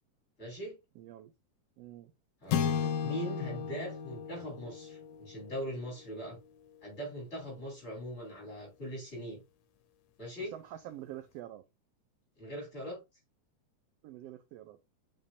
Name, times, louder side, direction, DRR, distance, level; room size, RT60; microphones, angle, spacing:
voice 1, 0.4-0.8 2.4-6.4 6.8-9.4 10.2-10.5 12.4-13.0, equal, 20° left, 4.5 m, -41 dB
voice 2, 1.0-1.3 1.8-2.1 10.4-11.6 14.0-14.8, right 12 dB, 80° right, 1.4 m, -46 dB
sound 1, 2.5-7.0, left 7 dB, 75° left, 1.9 m, -35 dB
7.4 x 5.2 x 2.7 m
omnidirectional pair, 3.4 m